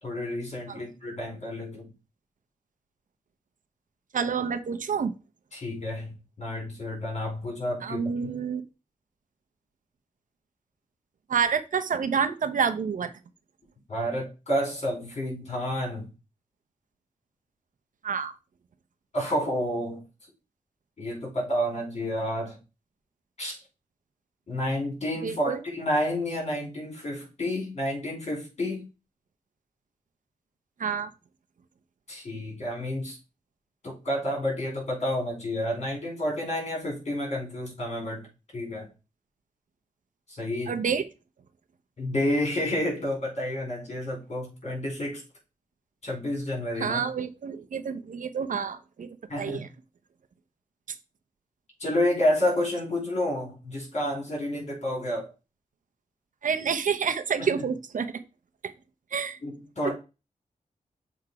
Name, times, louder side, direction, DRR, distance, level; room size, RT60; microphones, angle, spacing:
voice 1, 0.0-1.8 5.5-8.1 13.9-16.1 19.1-20.0 21.0-22.6 23.4-23.6 24.5-28.9 32.1-33.2 33.8-38.3 38.5-38.9 40.3-40.8 42.0-45.2 46.0-47.0 49.3-49.7 51.8-55.3 57.4-57.6 59.4-59.9, left 1 dB, 50° left, 4.5 m, -30 dB
voice 2, 4.1-5.1 7.8-8.6 11.3-13.1 18.0-18.3 25.2-25.6 30.8-31.1 40.7-41.1 46.8-49.1 49.4-49.7 56.4-58.1 59.1-59.4, right 6 dB, 70° right, 0.8 m, -28 dB
7.5 x 3.6 x 4.8 m
wide cardioid pair, 95°, 14 cm